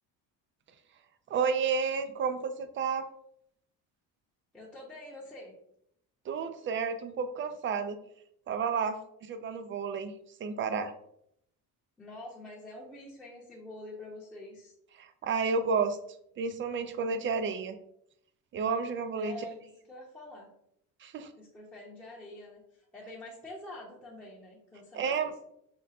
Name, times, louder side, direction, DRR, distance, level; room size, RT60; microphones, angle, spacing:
voice 1, 1.3-3.1 6.3-8.0 8.5-10.1 10.4-10.9 15.0-16.0 16.4-17.8 18.5-19.4 21.0-21.3 24.9-25.3, right 5 dB, 35° right, 10 dB, 0.4 m, -31 dB
voice 2, 4.5-5.6 12.0-14.7 19.1-20.5 21.4-25.3, left 1 dB, 5° left, -6 dB, 0.7 m, -46 dB
5.1 x 2.1 x 4.1 m, 0.74 s
cardioid pair, 145°, 38 cm